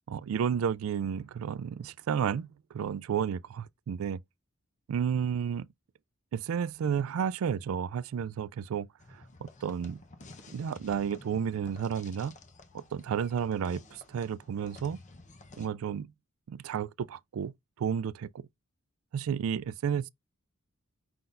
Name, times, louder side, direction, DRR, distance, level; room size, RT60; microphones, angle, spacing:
voice 1, 0.1-4.2 4.9-5.7 6.3-10.0 10.5-12.4 12.7-15.0 15.6-16.1 16.5-17.5 17.8-18.4 19.1-20.1, right 7 dB, 80° right, 0.3 m, -32 dB
sound 1, 9.0-15.7, left 2 dB, 35° left, 0.8 m, -52 dB
5.5 x 3.9 x 2.5 m
head